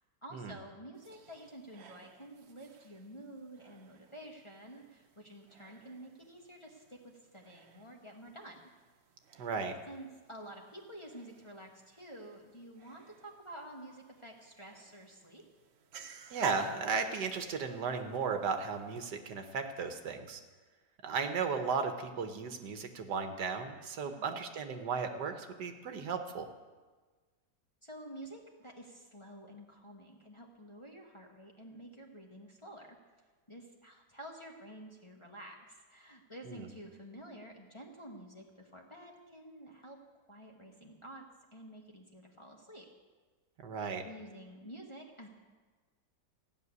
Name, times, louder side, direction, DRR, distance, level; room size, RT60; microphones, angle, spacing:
voice 1, 0.2-8.6 9.9-15.4 24.0-24.3 27.8-33.0 33.5-41.2 41.5-42.9 44.0-45.3, right 1 dB, 20° left, -1 dB, 1.3 m, -50 dB
sound 1, 0.9-19.1, right 6 dB, 55° right, 0.7 m, -52 dB
voice 2, 9.4-9.7 16.3-20.4 21.0-26.5 36.5-36.7 43.6-44.0, right 5 dB, 70° right, 6 dB, 1.6 m, -35 dB
15.0 x 6.6 x 9.5 m, 1.4 s
omnidirectional pair, 1.9 m